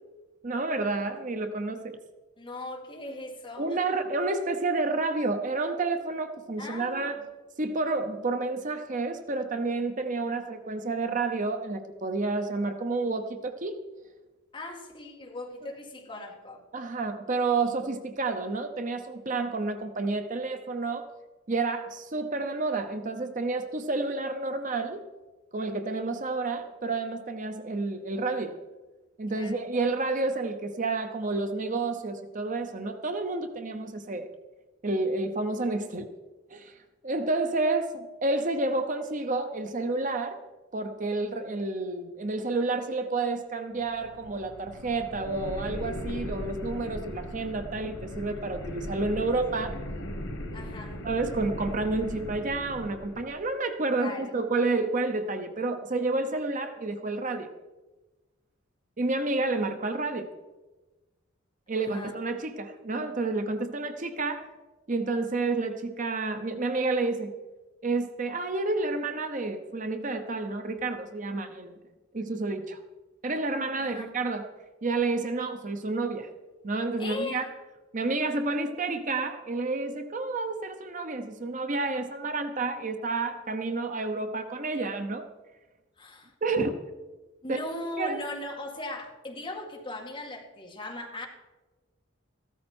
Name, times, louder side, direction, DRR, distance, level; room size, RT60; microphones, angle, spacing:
voice 1, 0.4-2.0 3.6-7.2 7.6-13.8 16.7-21.1 21.5-25.0 25.5-28.6 29.2-34.3 34.8-36.1 36.5-36.7 37.0-40.4 40.7-49.8 51.0-57.5 59.0-60.3 61.7-64.5 64.9-67.3 67.8-71.8 72.1-72.8 73.2-74.5 74.8-76.3 76.6-77.5 77.9-85.3 86.4-86.7 87.5-87.6 88.0-88.2, right 3 dB, 40° right, 7 dB, 0.8 m, -30 dB
voice 2, 2.4-4.0 6.6-7.3 14.5-16.6 29.3-29.7 50.5-51.1 54.0-54.3 61.7-62.2 73.8-74.2 77.0-77.5 86.0-86.3 87.4-91.3, left 1 dB, 25° left, 1 dB, 2.0 m, -39 dB
sound 1, 43.8-53.4, left 1 dB, 85° left, 1.8 m, -38 dB
15.0 x 13.0 x 4.4 m, 1.2 s
head